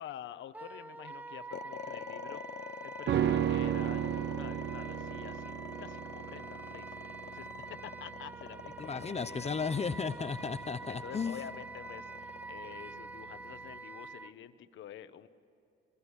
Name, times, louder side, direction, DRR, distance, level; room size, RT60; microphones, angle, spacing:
voice 1, 0.0-5.5 5.8-9.6 10.9-15.3, left 10 dB, 75° left, 10 dB, 1.2 m, -49 dB
Wind instrument woodwind instrument, 0.5-14.3, right 3 dB, 10° right, 0.6 m, -46 dB
sound 1, 1.5-13.8, left 9 dB, 60° left, 0.9 m, -47 dB
sound 2, 3.1-12.5 12.8-12.9, right 10 dB, 60° right, 0.7 m, -35 dB
voice 2, 8.8-11.4, left 5 dB, 30° left, 11 dB, 0.9 m, -34 dB
24.5 x 21.0 x 9.8 m, 2.7 s
cardioid pair, 90°, 20 cm